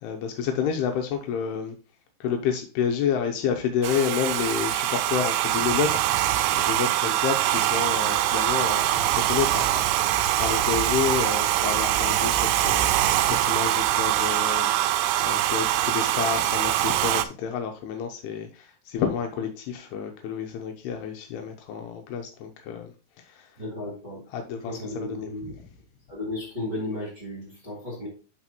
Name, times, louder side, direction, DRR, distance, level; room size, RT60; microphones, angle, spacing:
voice 1, 0.0-1.8 2.2-23.5 24.3-25.3, left 7 dB, 80° left, 2.6 m, -30 dB
Domestic sounds home sounds, 3.8-17.2, right 13 dB, 90° right, 2.8 m, -23 dB
voice 2, 23.6-24.2 24.5-25.5 26.1-28.1, left 1 dB, 20° right, 1.8 m, -34 dB
11.5 x 4.2 x 3.0 m
omnidirectional pair, 4.8 m